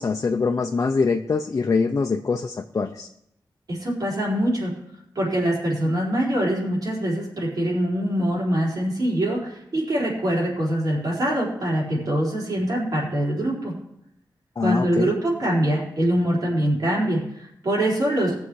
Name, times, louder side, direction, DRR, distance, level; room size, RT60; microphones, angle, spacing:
voice 1, 0.0-3.1 14.6-15.1, left 4 dB, 45° left, 4 dB, 0.6 m, -23 dB
voice 2, 3.7-4.7 5.1-13.7 14.6-18.4, right 1 dB, 55° right, -5 dB, 4.7 m, -24 dB
19.5 x 7.1 x 4.8 m, 0.79 s
wide cardioid pair, 155°, 8 cm